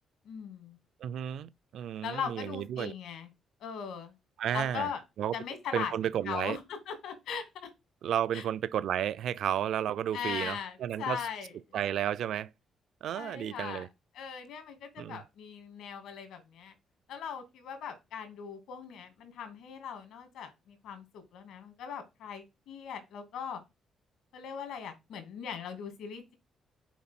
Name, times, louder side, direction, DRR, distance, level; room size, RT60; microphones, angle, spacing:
voice 1, 0.2-0.8 2.0-3.3 3.6-4.1 4.5-5.0 5.3-5.9 6.2-7.7 8.3-8.4 10.1-11.5 13.1-13.9 14.1-16.7 17.1-23.6 24.3-26.3, left 7 dB, 80° left, 2.6 m, -39 dB
voice 2, 1.0-2.9 4.4-4.9 5.2-5.3 5.7-6.6 8.0-11.2 11.7-12.5 13.0-13.9 15.0-15.2, right 10 dB, 65° right, 0.4 m, -32 dB
7.1 x 4.8 x 6.0 m
cardioid pair, 160°, 0 cm